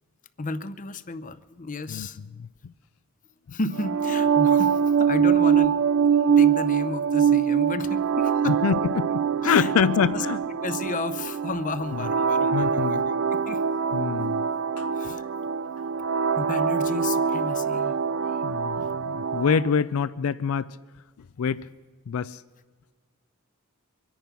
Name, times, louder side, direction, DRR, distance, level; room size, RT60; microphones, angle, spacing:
voice 1, 0.4-2.2 3.5-8.6 9.4-10.3 10.6-13.7 14.9-15.3 16.4-18.0, left 3 dB, 40° left, 0.7 m, -33 dB
voice 2, 1.9-2.7 3.5-3.6 8.5-10.4 11.9-12.1 12.5-13.1 13.9-14.5 14.8-14.9 18.4-20.8 21.4-21.7 22.1-22.4, left 6 dB, 75° left, 0.4 m, -26 dB
sound 1, 3.8-19.7, right 7 dB, 60° right, 0.5 m, -24 dB
24.0 x 10.5 x 5.9 m
head